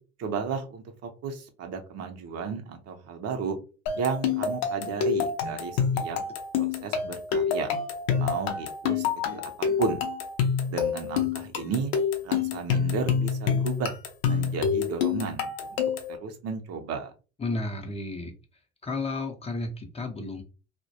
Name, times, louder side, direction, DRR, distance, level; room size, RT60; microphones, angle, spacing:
voice 1, 0.2-3.6 3.9-6.2 6.6-7.7 8.1-9.0 9.3-10.0 10.7-11.9 12.2-14.0 14.3-15.5 16.1-17.1, right 5 dB, 55° right, 5 dB, 0.7 m, -33 dB
sound 1, 3.9-16.2, left 6 dB, 85° left, 0.5 m, -27 dB
voice 2, 17.4-18.3 18.8-20.4, left 2 dB, 20° left, 2 dB, 0.6 m, -32 dB
2.2 x 2.1 x 2.7 m, 0.33 s
hypercardioid pair, 70°, 31 cm